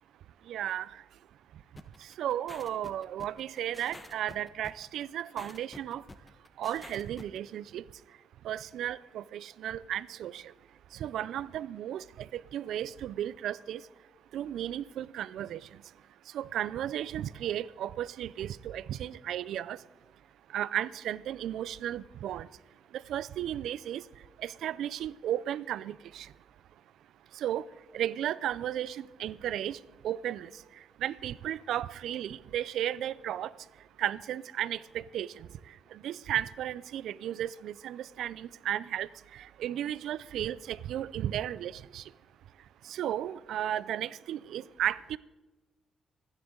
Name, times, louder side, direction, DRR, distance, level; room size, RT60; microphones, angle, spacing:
voice 1, 0.5-0.9 2.2-6.0 6.6-7.8 8.4-10.4 11.0-12.0 12.3-13.8 14.3-15.6 16.3-19.8 20.5-22.5 22.9-24.0 24.4-26.3 27.4-27.7 27.9-29.8 30.0-30.5 31.0-33.5 34.0-35.5 35.9-42.0 42.9-45.2, right 11 dB, 75° right, 0.4 m, -34 dB
sound 1, 1.8-7.4, left 2 dB, 20° left, 1.0 m, -49 dB
26.5 x 9.8 x 3.8 m
cardioid pair, 90°, 0 cm